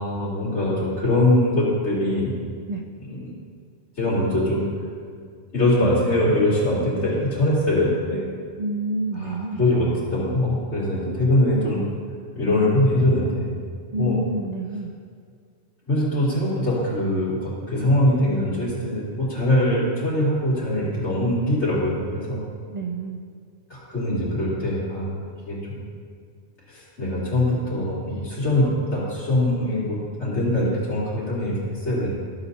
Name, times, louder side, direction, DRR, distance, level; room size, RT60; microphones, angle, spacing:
voice 1, 0.0-2.4 3.1-3.3 4.0-4.7 5.5-8.2 9.1-11.8 12.4-13.5 14.0-14.2 15.9-22.4 23.7-25.8 26.7-32.1, left 1 dB, 65° left, -8 dB, 3.0 m, -22 dB
voice 2, 8.6-9.6 13.9-14.9 22.7-23.2, right 1 dB, 65° right, 4 dB, 0.4 m, -28 dB
13.5 x 7.9 x 2.8 m, 2.1 s
omnidirectional pair, 1.2 m